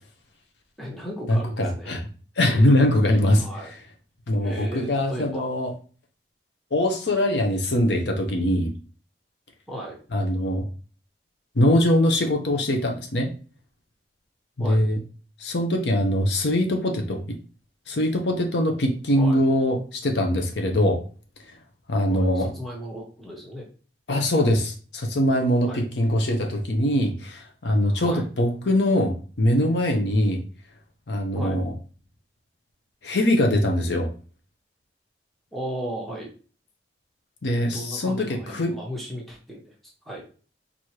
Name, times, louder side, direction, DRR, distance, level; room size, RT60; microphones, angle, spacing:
voice 1, 0.8-2.0 3.4-3.7 4.4-5.5 9.7-10.0 14.6-14.8 19.2-19.4 22.0-23.7 25.6-25.8 27.9-28.3 31.3-31.6 35.5-36.3 37.7-39.7 40.1-40.2, equal, ahead, -3 dB, 1.1 m, -35 dB
voice 2, 1.3-2.1 2.4-3.8 4.3-5.7 6.7-8.7 10.1-10.6 11.5-13.3 14.6-15.0 15.4-17.4 17.9-21.0 21.9-22.5 24.1-30.4 31.1-31.7 33.0-34.1 37.4-38.8, left 1 dB, 75° left, 3 dB, 0.8 m, -22 dB
4.7 x 2.7 x 2.9 m, 0.38 s
head